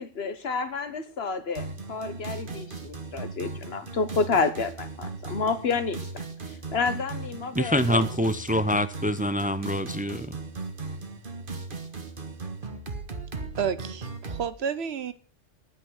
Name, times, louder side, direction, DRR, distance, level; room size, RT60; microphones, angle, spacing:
voice 1, 0.0-6.0 6.7-8.1, left 4 dB, 60° left, 1.4 m, -29 dB
sound 1, 1.5-14.5, right 3 dB, 45° right, 1.7 m, -37 dB
voice 2, 7.5-10.4, equal, 10° right, 0.4 m, -25 dB
voice 3, 13.6-15.1, right 7 dB, 65° right, 1.0 m, -30 dB
10.5 x 9.4 x 6.4 m
omnidirectional pair, 1.2 m